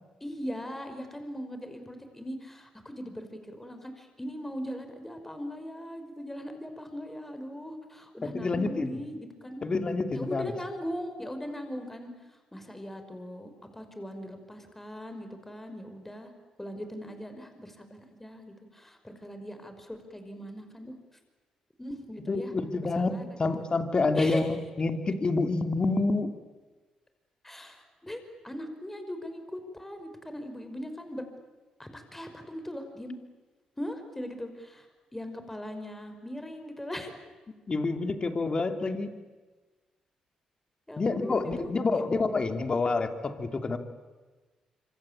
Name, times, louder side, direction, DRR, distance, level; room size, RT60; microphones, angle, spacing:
voice 1, 0.2-9.6 10.1-16.3 16.6-20.9 21.8-23.5 24.1-24.5 27.4-31.2 31.8-33.1 33.8-34.9 35.1-37.1 40.9-42.0, equal, 10° left, 7 dB, 5.5 m, -40 dB
voice 2, 8.2-8.9 9.6-10.5 22.3-26.3 37.7-39.1 41.0-43.8, left 3 dB, 40° left, 7 dB, 2.9 m, -28 dB
26.0 x 25.5 x 8.9 m, 1.3 s
supercardioid pair, 55°, 2 cm